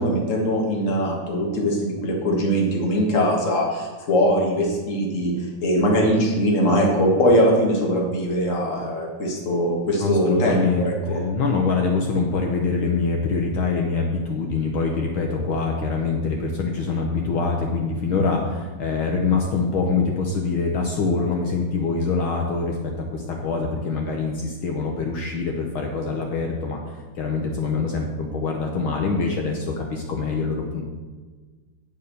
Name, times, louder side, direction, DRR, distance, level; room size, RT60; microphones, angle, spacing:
voice 1, 0.0-5.3 5.6-11.2, equal, 35° left, -1 dB, 1.5 m, -21 dB
voice 2, 10.0-30.8, left 4 dB, 70° left, 1 dB, 1.2 m, -24 dB
8.1 x 5.5 x 6.7 m, 1.4 s
omnidirectional pair, 3.3 m